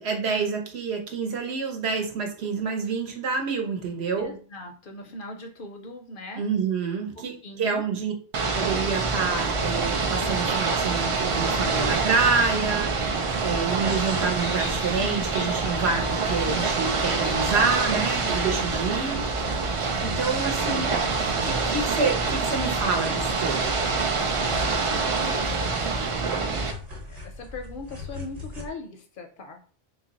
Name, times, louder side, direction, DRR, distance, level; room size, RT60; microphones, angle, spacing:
voice 1, 0.0-4.3 6.4-7.3 7.6-8.1 8.5-12.9 13.4-19.2 20.0-21.0 21.4-23.7, right 5 dB, 75° right, 2 dB, 1.0 m, -27 dB
voice 2, 4.2-6.4 7.1-7.9 12.2-12.7 20.2-20.7 23.9-26.7 27.1-29.6, left 2 dB, 60° left, 4 dB, 0.6 m, -41 dB
Ocean / Boat Water vehicle, 8.3-26.7, right 4 dB, 60° right, 0.3 m, -26 dB
sound 1, 9.3-28.7, left 2 dB, 40° right, 1.0 m, -41 dB
sound 2, 13.9-18.9, left 6 dB, 85° left, 0.9 m, -44 dB
2.9 x 2.4 x 3.9 m, 0.42 s
omnidirectional pair, 1.1 m